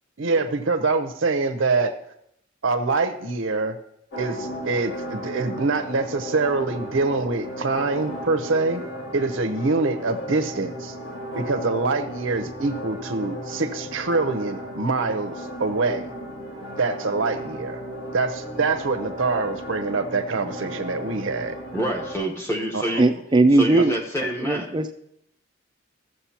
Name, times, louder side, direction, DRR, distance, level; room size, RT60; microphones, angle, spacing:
voice 1, 0.2-1.9 2.6-3.8 4.2-8.8 9.1-10.9 11.3-16.1 16.8-17.8 18.1-21.6 22.7-23.0, right 3 dB, 80° right, 6 dB, 0.7 m, -25 dB
sound 1, 4.1-22.2, equal, 75° left, 2.5 m, -35 dB
voice 2, 21.7-23.0 23.5-24.7, right 1 dB, 15° left, 0 dB, 1.1 m, -27 dB
voice 3, 23.0-23.9 24.2-24.9, right 2 dB, 25° right, 8 dB, 0.4 m, -19 dB
14.0 x 7.7 x 2.9 m, 0.74 s
head